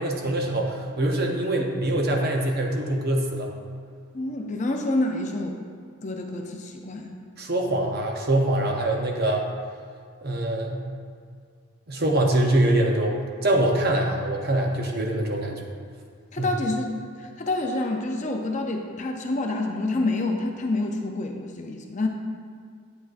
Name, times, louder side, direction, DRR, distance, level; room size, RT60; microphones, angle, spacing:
voice 1, 0.0-3.5 7.4-9.5 10.2-10.9 11.9-13.1 13.4-15.7 16.4-16.5, right 1 dB, 45° right, 1 dB, 0.8 m, -24 dB
voice 2, 4.1-5.6 6.0-7.1 16.3-22.1, left 2 dB, 35° left, 2 dB, 0.5 m, -28 dB
8.6 x 8.0 x 2.5 m, 2.1 s
head